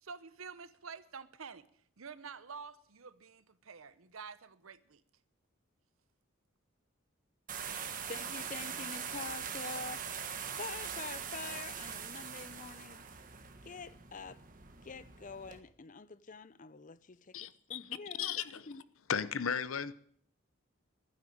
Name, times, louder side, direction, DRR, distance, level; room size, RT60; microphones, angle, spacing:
voice 1, 0.0-1.7 2.0-5.0, right 5 dB, 80° right, 0.9 m, -48 dB
sound 1, 7.5-15.6, right 7 dB, 40° right, 1.5 m, -42 dB
voice 2, 8.1-10.3 10.6-13.0 13.6-14.4 14.8-18.8, left 4 dB, 40° left, 0.6 m, -46 dB
voice 3, 17.3-17.8 18.2-18.6 19.1-19.9, left 7 dB, 80° left, 0.8 m, -35 dB
12.0 x 10.0 x 9.2 m
head